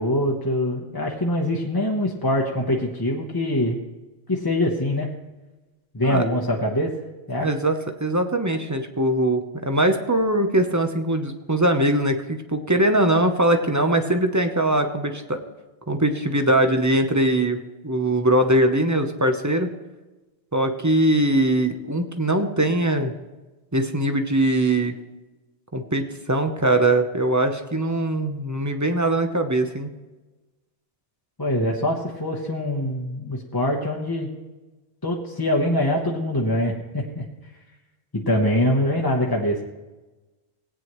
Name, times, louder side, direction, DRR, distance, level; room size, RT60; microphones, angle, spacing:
voice 1, 0.0-3.8 4.3-5.1 5.9-6.9 7.3-7.5 31.4-34.3 35.0-37.2 38.1-39.6, left 1 dB, 20° left, -1 dB, 1.1 m, -23 dB
voice 2, 7.4-15.4 15.9-17.6 17.8-19.7 20.5-23.1 23.7-24.9 25.7-29.9, right 1 dB, 20° right, 6 dB, 0.7 m, -21 dB
18.0 x 9.0 x 3.1 m, 1.1 s
omnidirectional pair, 1.1 m